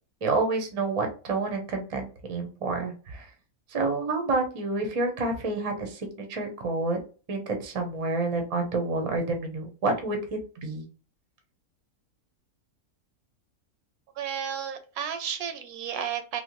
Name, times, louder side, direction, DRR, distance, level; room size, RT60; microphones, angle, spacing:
voice 1, 0.2-3.2 3.7-7.0 7.3-10.2 10.6-10.9, right 3 dB, 40° right, 4 dB, 0.5 m, -28 dB
voice 2, 14.2-16.4, right 8 dB, 75° right, 8 dB, 1.0 m, -32 dB
3.2 x 2.1 x 2.9 m, 0.36 s
omnidirectional pair, 1.6 m